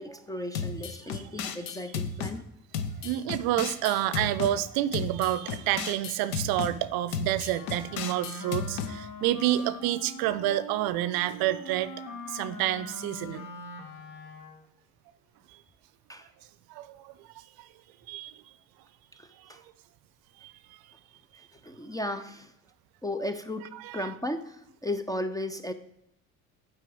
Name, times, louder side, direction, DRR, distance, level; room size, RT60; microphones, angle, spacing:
voice 1, 0.0-2.5 16.1-16.3 19.2-19.6 21.4-22.5 23.0-25.7, left 1 dB, 10° left, 10 dB, 0.4 m, -35 dB
sound 1, 0.5-2.4 2.7-4.5 4.9-6.7 7.1-8.9, left 6 dB, 75° left, 0.8 m, -34 dB
voice 2, 1.1-1.5 3.0-11.9 12.3-13.5 15.5-15.6 16.7-17.7 18.1-18.4 19.4-19.6 20.4-20.8 23.7-24.1, right 13 dB, 60° right, 15 dB, 0.6 m, -29 dB
Wind instrument woodwind instrument, 7.5-14.7, left 2 dB, 50° left, 1.2 m, -43 dB
8.2 x 4.6 x 5.2 m, 0.79 s
hypercardioid pair, 60°, 42 cm